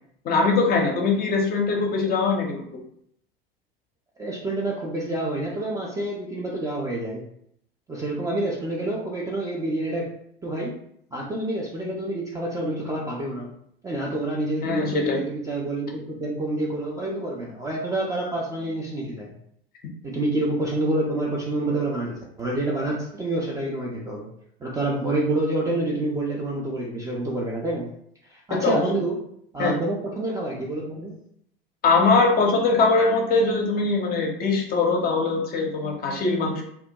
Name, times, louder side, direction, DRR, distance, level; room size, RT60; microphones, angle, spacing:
voice 1, 0.2-2.7 14.6-15.2 28.6-28.8 29.6-29.8 31.8-36.6, left 3 dB, 30° left, 1 dB, 0.6 m, -22 dB
voice 2, 4.2-7.2 7.9-10.1 10.4-10.7 11.1-13.5 13.8-19.3 20.0-24.3 24.6-27.9 28.3-29.2 29.5-31.2, right 2 dB, 10° right, -4 dB, 0.3 m, -28 dB
2.2 x 2.1 x 2.7 m, 0.69 s
figure-of-eight pair, 75°, 29 cm